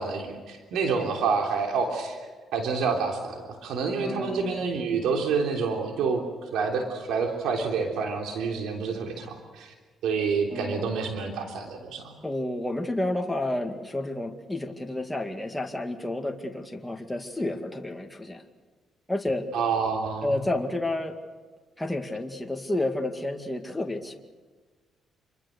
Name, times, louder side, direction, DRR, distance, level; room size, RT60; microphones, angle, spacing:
voice 1, 0.0-2.2 2.5-3.3 3.6-6.2 6.5-9.7 10.0-12.1 19.5-20.3, right 5 dB, 85° right, 2 dB, 3.4 m, -28 dB
voice 2, 4.0-4.6 10.5-10.9 12.2-18.4 19.1-19.5 20.2-21.2 21.8-24.2, left 1 dB, 10° left, 3 dB, 2.2 m, -30 dB
27.0 x 23.5 x 6.7 m, 1.4 s
cardioid pair, 90°, 0 cm